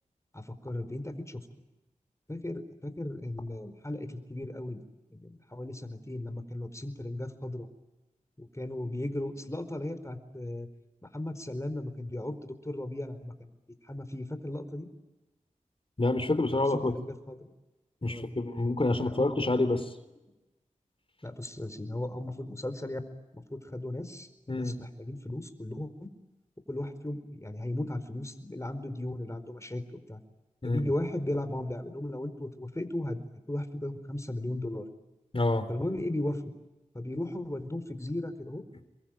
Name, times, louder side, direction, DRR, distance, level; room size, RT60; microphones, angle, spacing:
voice 1, 0.3-1.4 2.3-4.8 5.1-7.7 8.4-10.7 11.0-13.5 13.8-14.9 16.7-17.5 18.1-18.3 19.0-19.3 21.2-23.0 23.3-26.1 26.7-30.2 30.6-33.2 33.5-34.9 35.7-36.5 36.9-38.6, left 1 dB, 20° left, 10 dB, 4.5 m, -36 dB
voice 2, 16.0-16.9 18.0-19.9 24.5-24.7 30.6-30.8 35.3-35.7, left 2 dB, 40° left, 10 dB, 3.8 m, -27 dB
27.5 x 23.0 x 9.1 m, 1.0 s
cardioid pair, 40°, 14 cm